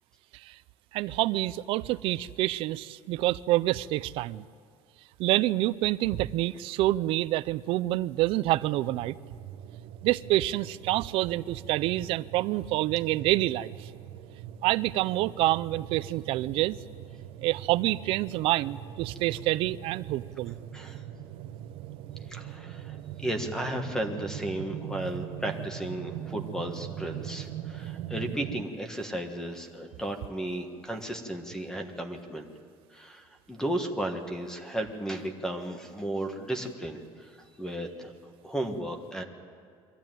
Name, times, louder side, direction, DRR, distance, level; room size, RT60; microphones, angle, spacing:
voice 1, 0.9-4.4 5.2-9.1 10.0-13.9 14.6-16.8 17.4-20.6, right 16 dB, 65° right, 17 dB, 0.5 m, -27 dB
sound 1, 8.7-28.6, right 11 dB, 80° right, 1.0 m, -41 dB
voice 2, 20.7-21.0 22.3-32.5 32.9-38.1 38.4-39.2, right 1 dB, 5° left, 5 dB, 1.5 m, -34 dB
23.0 x 14.5 x 9.1 m, 2.2 s
cardioid pair, 165°, 10 cm